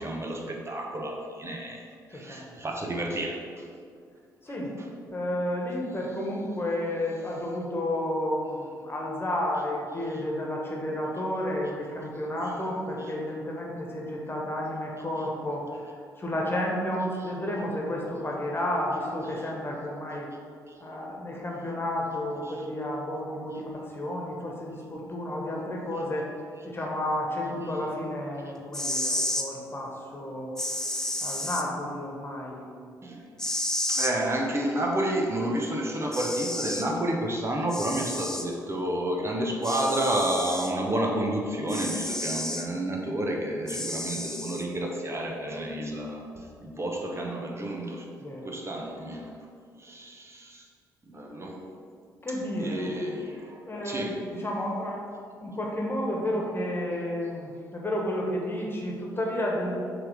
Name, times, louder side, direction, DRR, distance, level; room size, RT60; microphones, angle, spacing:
voice 1, 0.0-1.8 2.1-3.4 13.0-13.1 22.5-22.6 33.0-33.3 33.9-48.1 48.4-49.3 49.8-50.6 51.0-51.6 52.6-54.2, right 1 dB, 25° right, 0 dB, 1.0 m, -30 dB
voice 2, 2.1-2.6 4.4-4.7 5.1-15.8 16.2-20.3 20.8-26.3 26.6-30.5 31.2-32.8 43.6-43.8 48.2-48.5 52.2-52.9 53.6-55.1 55.4-59.7, left 1 dB, 25° left, -2 dB, 1.5 m, -31 dB
sound 1, 28.6-29.5 30.6-31.6 33.4-34.1 35.6-35.7 36.1-36.9 37.7-38.5 39.6-40.7 41.7-42.7 43.7-44.6, left 1 dB, 5° left, 0.6 m, -31 dB
5.9 x 3.5 x 5.0 m, 2.2 s
figure-of-eight pair, 40°, 10 cm